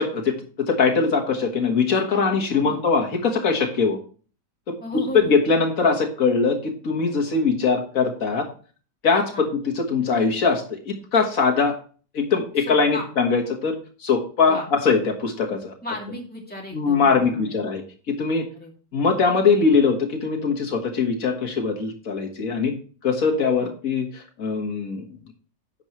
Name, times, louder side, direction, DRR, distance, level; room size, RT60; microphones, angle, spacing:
voice 1, 0.0-4.0 4.7-4.8 5.1-8.5 9.0-11.8 12.1-15.7 16.7-17.8 18.1-18.5 18.9-22.7 23.0-25.1, left 5 dB, 85° left, 2 dB, 1.9 m, -22 dB
voice 2, 2.5-2.8 4.8-5.3 9.3-9.5 12.6-13.1 14.5-14.7 15.8-17.6 18.5-18.7 23.6-23.7, left 1 dB, 5° left, -2 dB, 2.3 m, -35 dB
10.5 x 7.1 x 3.1 m, 0.40 s
omnidirectional pair, 1.4 m